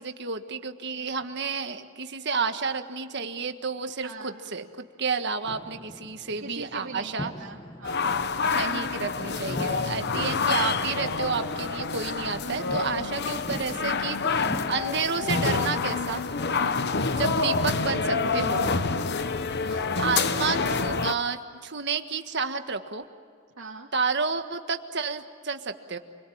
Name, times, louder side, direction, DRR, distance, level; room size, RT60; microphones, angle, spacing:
voice 1, 0.0-7.3 8.5-16.2 17.2-18.6 19.6-23.0 23.9-26.0, right 5 dB, 55° right, 7 dB, 1.6 m, -31 dB
voice 2, 4.0-4.4 6.4-8.1 16.5-16.8 18.9-19.3 23.6-23.9, right 3 dB, 80° right, -3 dB, 2.2 m, -43 dB
sound 1, 5.4-15.1, left 1 dB, 20° left, 1.3 m, -42 dB
sound 2, 7.8-21.1, left 4 dB, 55° left, 1.0 m, -27 dB
sound 3, 14.7-18.7, left 8 dB, 85° left, 7.8 m, -42 dB
28.5 x 22.5 x 8.7 m, 2.1 s
head